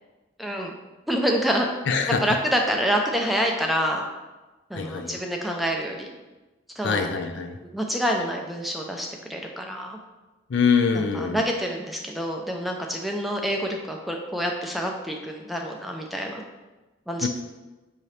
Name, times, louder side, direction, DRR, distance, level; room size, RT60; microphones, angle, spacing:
voice 1, 0.4-0.7 1.1-1.7 2.1-4.0 4.7-6.1 6.8-7.1 7.7-10.0 10.9-16.4 17.1-17.3, equal, ahead, 1 dB, 0.3 m, -27 dB
voice 2, 1.9-2.2 4.7-5.1 6.8-7.5 10.5-11.4 17.2-17.3, left 5 dB, 70° left, 6 dB, 0.4 m, -23 dB
5.8 x 2.8 x 3.2 m, 1.1 s
head